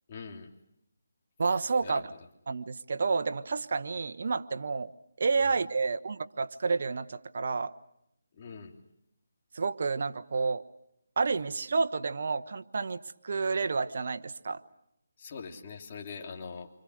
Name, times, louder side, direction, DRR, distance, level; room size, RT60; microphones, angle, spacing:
voice 1, 0.1-0.5 1.8-2.0 5.4-5.6 8.3-8.7 15.2-16.7, left 5 dB, 35° left, 1 dB, 3.1 m, -43 dB
voice 2, 1.4-2.1 2.5-4.9 5.2-7.7 9.5-10.6 11.2-13.0 13.2-14.6, right 4 dB, 55° right, 10 dB, 1.2 m, -30 dB
27.5 x 25.5 x 6.5 m, 0.79 s
figure-of-eight pair, 160°, 0 cm